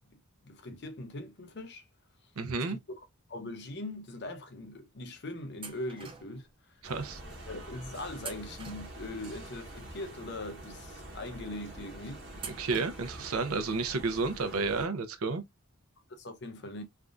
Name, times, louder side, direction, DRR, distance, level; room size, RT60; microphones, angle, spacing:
voice 1, 0.4-1.9 2.7-2.8 3.3-6.8 7.5-12.4 16.1-16.8, left 2 dB, 50° left, 0.6 m, -41 dB
voice 2, 2.4-2.8 6.8-7.2 12.6-15.4, right 4 dB, 80° right, 0.6 m, -31 dB
sound 1, 5.6-6.5 8.2-9.3 12.4-13.3, right 5 dB, 25° right, 0.4 m, -45 dB
sound 2, 6.8-14.9, right 1 dB, 55° right, 1.0 m, -46 dB
3.4 x 2.5 x 2.3 m
head